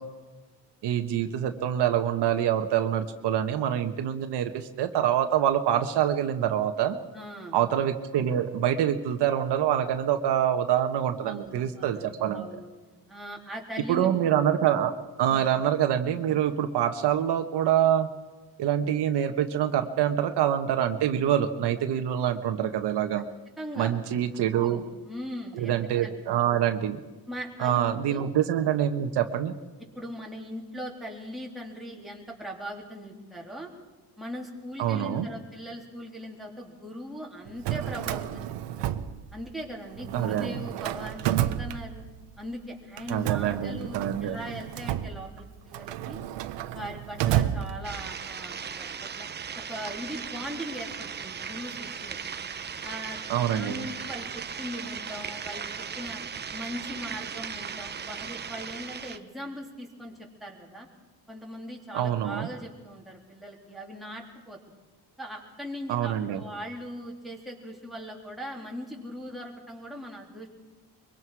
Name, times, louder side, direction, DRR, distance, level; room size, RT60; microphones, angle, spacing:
voice 1, 0.8-7.0 7.5-12.5 13.9-14.9 15.2-18.1 18.6-23.3 23.8-24.8 25.5-27.0 27.6-29.5 34.8-35.3 40.1-40.5 43.1-44.4 53.3-53.9 61.9-62.5 65.9-66.4, right 10 dB, 70° right, 6 dB, 1.4 m, -25 dB
voice 2, 7.1-7.6 11.2-12.7 13.1-14.1 23.6-23.9 24.5-25.7 26.0-26.1 27.3-28.3 29.9-33.7 34.2-38.9 39.3-42.0 42.4-46.2 46.7-49.3 49.5-52.2 52.8-56.2 56.5-60.9 61.3-64.6 65.2-70.5, equal, ahead, -2 dB, 3.2 m, -40 dB
Drawer open or close, 37.5-39.7 40.0-42.3 43.0-48.2, right 12 dB, 90° right, 1.0 m, -31 dB
sound 1, 47.8-59.2, right 6 dB, 25° right, 0.8 m, -37 dB
23.5 x 23.5 x 4.8 m, 1.2 s
cardioid pair, 150°, 42 cm